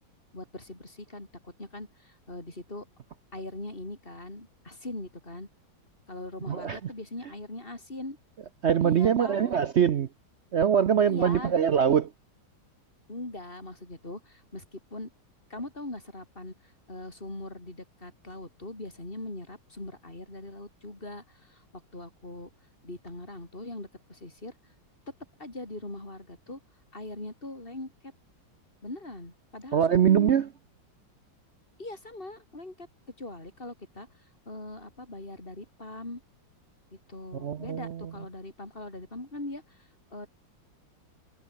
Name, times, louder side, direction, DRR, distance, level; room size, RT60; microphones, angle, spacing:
voice 1, 0.3-2.9 3.3-5.5 6.1-8.2 8.8-9.5 11.0-11.5 13.1-15.1 15.5-16.5 16.9-22.5 22.8-24.6 25.1-26.6 26.9-28.1 28.8-30.4 31.8-32.9 33.2-34.1 34.5-36.2 37.1-40.3, left 2 dB, 25° left, 5.5 m, -41 dB
voice 2, 6.5-6.8 8.6-10.1 10.5-12.1 29.7-30.5 37.4-38.2, right 8 dB, 80° right, 0.6 m, -23 dB
omnidirectional pair, 2.1 m